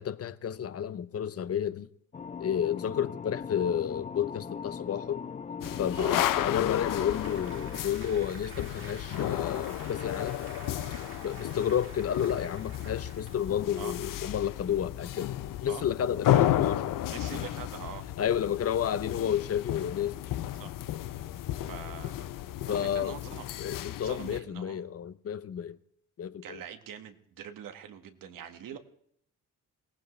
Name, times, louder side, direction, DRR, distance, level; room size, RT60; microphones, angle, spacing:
voice 1, 0.0-1.9 2.4-5.2 5.8-10.4 11.2-15.3 15.6-17.0 18.2-20.2 22.7-23.2 23.6-25.8 26.2-26.6, left 9 dB, 45° left, 0.9 m, -31 dB
sound 1, 2.1-7.8, left 6 dB, 25° left, 0.5 m, -39 dB
sound 2, 5.6-24.4, left 12 dB, 75° left, 0.8 m, -33 dB
Applause, 6.3-13.7, right 4 dB, 40° right, 2.2 m, -49 dB
voice 2, 17.1-18.1 20.6-20.7 21.7-22.3 22.7-23.5 24.0-24.9 26.4-28.8, right 9 dB, 80° right, 1.9 m, -43 dB
22.0 x 18.5 x 3.3 m
cardioid pair, 110°, 33 cm